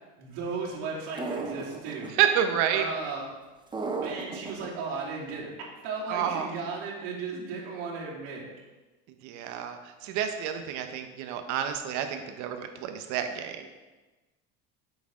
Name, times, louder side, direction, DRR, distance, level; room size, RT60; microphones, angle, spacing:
voice 1, 0.2-2.1 2.7-3.3 4.0-8.5, right 4 dB, 85° right, -5 dB, 2.8 m, -35 dB
sound 1, 1.2-2.1 3.7-4.7, right 3 dB, 15° right, 0.7 m, -34 dB
voice 2, 2.1-2.9 6.1-6.5 9.2-13.7, right 9 dB, 65° right, 7 dB, 1.0 m, -29 dB
8.4 x 6.4 x 3.7 m, 1.2 s
cardioid pair, 140°, 31 cm